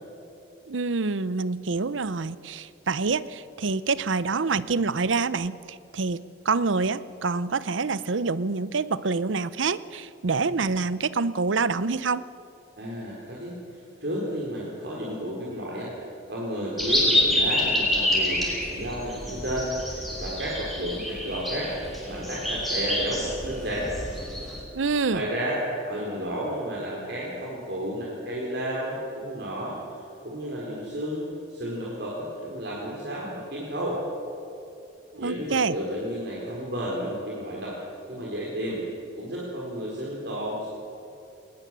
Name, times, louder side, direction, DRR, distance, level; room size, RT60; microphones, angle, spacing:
voice 1, 0.7-12.2 24.7-25.3 35.1-35.8, right 4 dB, 85° right, 17 dB, 0.7 m, -26 dB
voice 2, 12.8-15.9 16.3-21.7 22.1-23.9 25.1-29.8 30.2-31.2 31.5-34.0 35.2-37.8 38.1-38.8 39.2-40.7, equal, 60° right, -5 dB, 4.3 m, -32 dB
sound 1, 16.8-24.6, left 1 dB, ahead, 5.0 m, -27 dB
20.0 x 20.0 x 7.6 m, 2.7 s
head